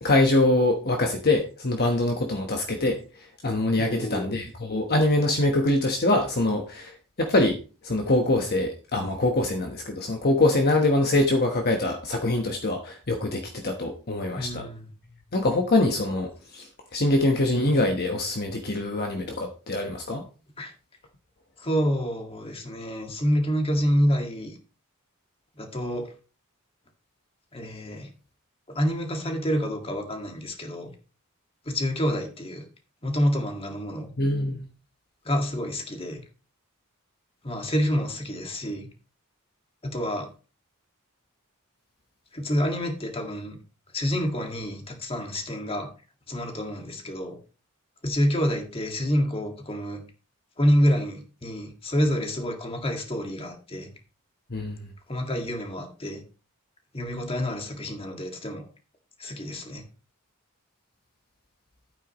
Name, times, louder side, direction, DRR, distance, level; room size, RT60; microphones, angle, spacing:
voice 1, 0.0-3.0 3.4-7.6 7.8-14.6 15.3-20.2 34.2-34.7 54.5-54.8, left 2 dB, 45° left, 1.2 m, -24 dB
voice 2, 3.8-4.3 14.3-14.9 20.6-20.7 21.6-24.6 25.6-26.1 27.5-28.1 28.7-30.9 31.7-32.6 33.0-34.1 35.3-36.2 37.4-38.9 39.8-40.3 42.3-43.6 43.9-45.9 46.3-47.4 48.0-50.0 50.6-53.9 55.1-56.2 56.9-58.7 59.2-59.8, equal, 25° left, 1.9 m, -27 dB
11.0 x 9.1 x 3.0 m
head